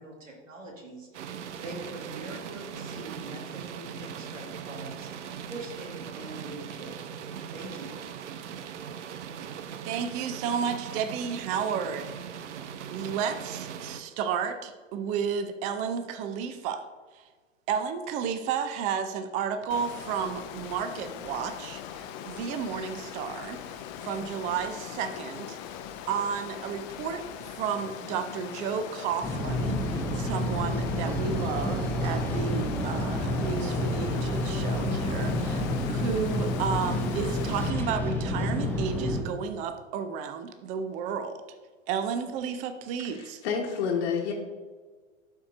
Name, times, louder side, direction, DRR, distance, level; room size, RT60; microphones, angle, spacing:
voice 1, 0.0-7.0 7.5-7.9, right 2 dB, 80° right, -1 dB, 1.8 m, -43 dB
sound 1, 1.1-14.0, right 7 dB, 65° right, 0.7 m, -40 dB
voice 2, 9.8-12.6 12.9-16.8 17.1-17.2 17.7-25.8 26.1-41.4 41.9-43.4, right 7 dB, 20° right, 9 dB, 0.4 m, -32 dB
Water, 19.7-37.7, left 9 dB, 35° left, 0.5 m, -41 dB
sound 2, 29.2-39.2, left 1 dB, 5° left, 1.0 m, -29 dB
voice 3, 43.0-44.3, left 6 dB, 50° left, -2 dB, 1.1 m, -29 dB
12.0 x 4.5 x 2.5 m, 1.4 s
figure-of-eight pair, 100°, 39 cm